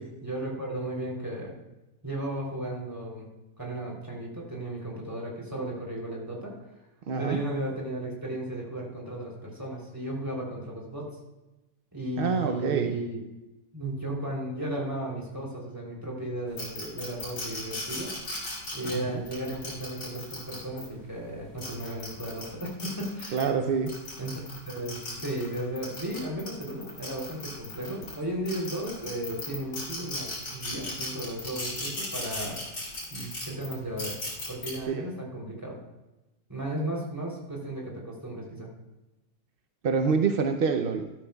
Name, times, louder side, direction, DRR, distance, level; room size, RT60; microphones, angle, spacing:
voice 1, 0.0-1.5 2.0-3.3 3.6-6.5 7.2-11.2 11.9-13.2 13.7-18.1 18.7-23.4 24.2-32.6 33.1-34.2 34.5-35.8 36.5-38.7, right 1 dB, 10° right, -4 dB, 3.1 m, -35 dB
voice 2, 7.1-7.4 12.2-12.9 18.9-19.2 23.3-23.9 34.9-35.1 39.8-41.1, right 5 dB, 65° right, 6 dB, 0.5 m, -26 dB
sound 1, 16.6-20.8 21.4-23.5 23.9-28.1 28.4-34.7, left 2 dB, 80° left, 4.1 m, -37 dB
13.5 x 13.0 x 2.3 m, 1.0 s
omnidirectional pair, 1.7 m